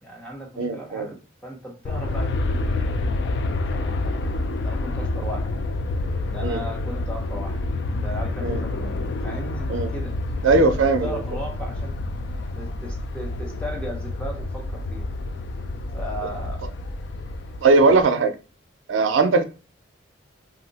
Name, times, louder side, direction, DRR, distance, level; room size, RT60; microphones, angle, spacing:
voice 1, 0.0-4.2 4.6-5.5 6.3-7.6 8.0-12.0 12.5-15.1 15.9-16.7 19.0-19.2, equal, 5° left, 0.7 m, -37 dB
voice 2, 0.6-1.1 6.4-6.6 8.4-8.6 9.7-9.9 10.4-11.2 17.6-18.4 18.9-19.4, right 3 dB, 80° right, 0.5 m, -19 dB
Aircraft, 1.9-18.0, left 2 dB, 60° left, 0.3 m, -28 dB
2.7 x 2.0 x 3.8 m
head